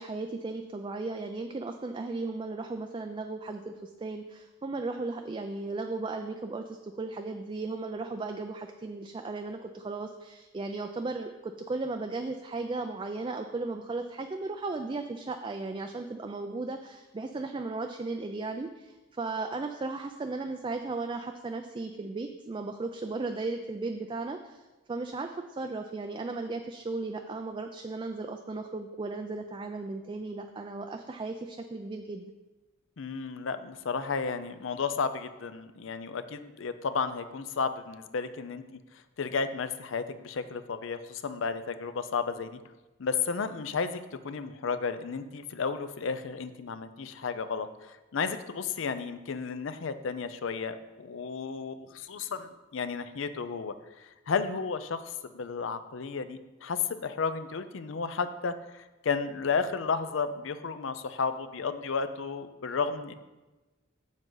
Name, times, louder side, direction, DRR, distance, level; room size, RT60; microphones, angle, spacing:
voice 1, 0.0-32.3, right 3 dB, 25° right, 5 dB, 0.3 m, -36 dB
voice 2, 33.0-38.6 39.2-42.6 43.0-63.1, left 5 dB, 70° left, 11 dB, 0.5 m, -33 dB
7.7 x 7.3 x 3.9 m, 1.1 s
head